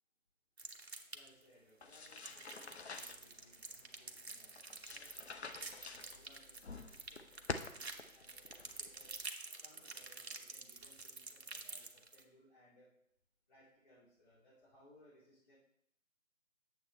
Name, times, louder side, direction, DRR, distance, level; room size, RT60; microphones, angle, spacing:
sound 1, 0.6-1.4 1.9-12.2, right 3 dB, 50° right, 0.9 m, -49 dB
voice 1, 1.1-9.2 9.6-12.9 13.5-15.6, left 1 dB, 30° left, -9 dB, 2.4 m, -66 dB
sound 2, 1.8-9.3, left 4 dB, 50° left, 0.6 m, -49 dB
8.6 x 7.2 x 3.2 m, 0.72 s
figure-of-eight pair, 155°, 42 cm